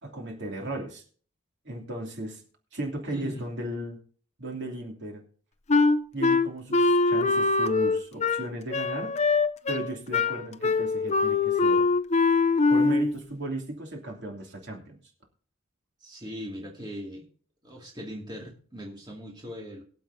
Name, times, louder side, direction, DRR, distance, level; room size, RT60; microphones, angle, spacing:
voice 1, 0.0-1.0 1.6-2.4 2.7-4.0 4.4-5.2 6.1-9.1 9.7-11.9 12.7-15.0, right 1 dB, 55° right, 1 dB, 2.9 m, -35 dB
voice 2, 3.1-3.4 16.0-17.3 17.6-19.8, equal, 20° right, -2 dB, 2.4 m, -39 dB
Wind instrument woodwind instrument, 5.7-13.2, left 3 dB, 30° left, 0.6 m, -23 dB
22.5 x 7.7 x 2.8 m, 0.43 s
head